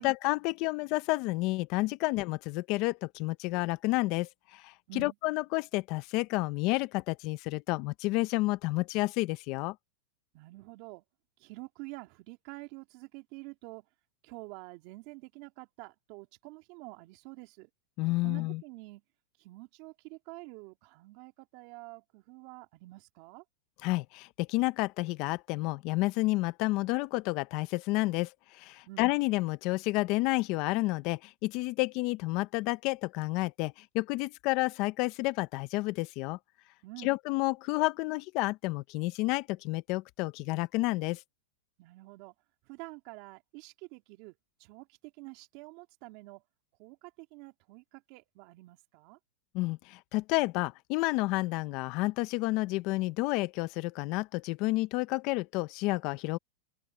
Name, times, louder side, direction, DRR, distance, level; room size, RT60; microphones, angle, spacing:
voice 1, 0.0-9.7 18.0-18.6 23.8-36.4 37.0-41.2 49.5-56.4, left 21 dB, 45° left, 0.8 m, -30 dB
voice 2, 10.3-11.0 11.4-13.8 14.2-17.7 18.2-19.0 19.4-23.4 28.9-29.1 36.8-37.1 41.8-42.3 42.7-44.3 44.6-46.4 46.8-49.2, right 24 dB, 50° right, 2.8 m, -48 dB
supercardioid pair, 140°, 0 cm